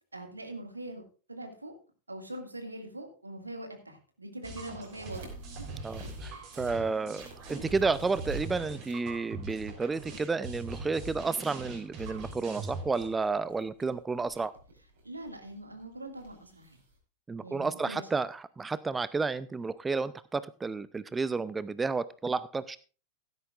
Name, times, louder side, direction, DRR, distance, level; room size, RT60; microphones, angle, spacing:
voice 1, 0.1-1.7 2.1-5.3 5.6-5.7 15.0-16.8 17.4-18.1, right 1 dB, 80° right, 5 dB, 2.1 m, -42 dB
sound 1, 4.4-13.1, right 3 dB, 40° right, 3.8 m, -42 dB
sound 2, 4.8-17.0, right 2 dB, 60° right, 5.1 m, -49 dB
voice 2, 5.8-14.5 17.3-22.8, right 4 dB, 15° right, 17 dB, 0.5 m, -31 dB
15.5 x 12.0 x 2.5 m, 0.36 s
figure-of-eight pair, 90°, 0 cm